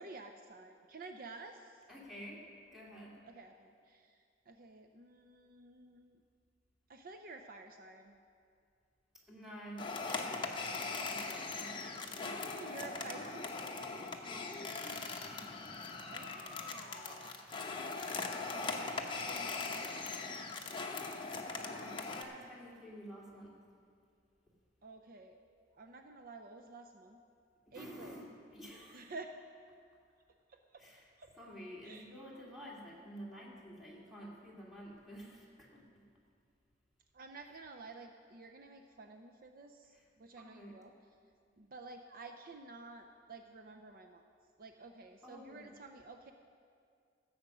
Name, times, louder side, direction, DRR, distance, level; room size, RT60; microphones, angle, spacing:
voice 1, 0.0-1.8 3.3-4.2 4.5-6.2 6.9-8.2 12.2-13.6 16.1-17.5 18.5-20.5 21.8-22.3 24.8-27.2 27.7-28.2 28.9-29.4 30.5-30.9 31.2-31.3 31.8-32.1 37.1-40.9 41.6-44.2 44.6-46.3, right 3 dB, 55° right, 5 dB, 0.6 m, -52 dB
voice 2, 1.9-2.4 2.7-3.2 9.3-10.5 11.0-12.5 12.9-13.4 14.2-15.5 16.3-16.5 21.5-23.6 27.7-29.1 30.8-31.1 31.3-36.1 39.9-40.0 40.4-40.7 45.2-45.7, equal, ahead, -6 dB, 2.4 m, -51 dB
sound 1, 9.8-22.2, left 3 dB, 25° left, 0.8 m, -40 dB
14.0 x 8.0 x 6.1 m, 2.3 s
head